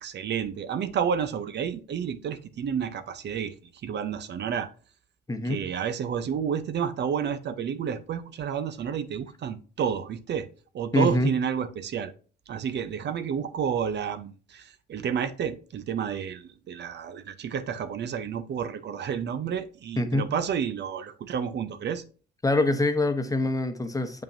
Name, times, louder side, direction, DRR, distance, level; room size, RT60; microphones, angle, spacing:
voice 1, 0.0-3.5 3.8-4.7 5.4-10.5 10.7-12.1 12.5-22.0, right 7 dB, 60° right, 0.7 m, -30 dB
voice 2, 5.3-5.6 10.9-11.3 20.0-20.3 22.4-24.2, left 2 dB, 15° left, 1.0 m, -25 dB
7.2 x 5.3 x 2.7 m
cardioid pair, 90°, 20 cm